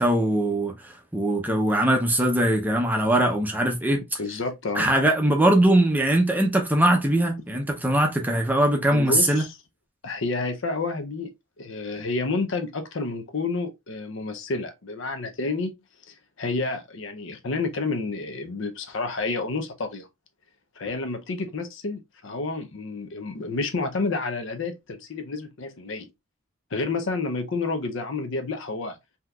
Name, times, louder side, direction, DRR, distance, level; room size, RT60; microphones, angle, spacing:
voice 1, 0.0-4.2 4.8-9.4, right 1 dB, 10° right, 0.5 m, -21 dB
voice 2, 4.2-4.9 8.9-9.6 10.0-11.3 11.6-15.7 16.1-20.1 20.8-26.1 26.7-29.0, left 3 dB, 60° left, 0.6 m, -30 dB
3.6 x 2.8 x 2.3 m
head